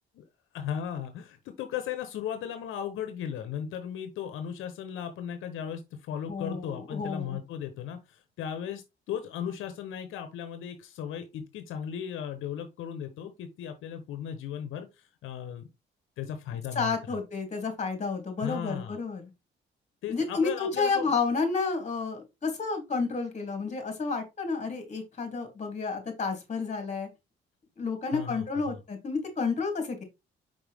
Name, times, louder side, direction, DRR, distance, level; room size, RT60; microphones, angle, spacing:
voice 1, 0.5-15.7 16.2-17.2 18.4-19.0 20.0-21.1 28.1-28.8, left 9 dB, 85° left, 1.0 m, -36 dB
voice 2, 6.3-7.4 16.7-19.2 20.1-27.1 27.8-30.0, left 4 dB, 35° left, 3.1 m, -30 dB
5.5 x 5.3 x 3.5 m
cardioid pair, 90°, 20 cm